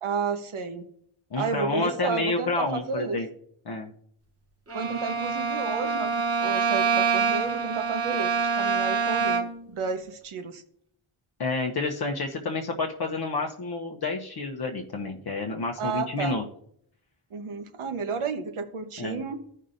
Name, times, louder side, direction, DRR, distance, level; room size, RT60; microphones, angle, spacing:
voice 1, 0.0-0.9 1.4-3.2 4.7-10.6 15.8-16.4 17.3-19.4, right 5 dB, 75° right, 8 dB, 1.0 m, -32 dB
voice 2, 1.3-3.3 3.7-3.9 11.4-16.4 19.0-19.2, left 3 dB, 50° left, 0 dB, 0.8 m, -29 dB
Bowed string instrument, 4.7-9.7, right 5 dB, 30° right, 1.0 m, -26 dB
15.5 x 5.4 x 2.6 m, 0.66 s
wide cardioid pair, 170°, 50 cm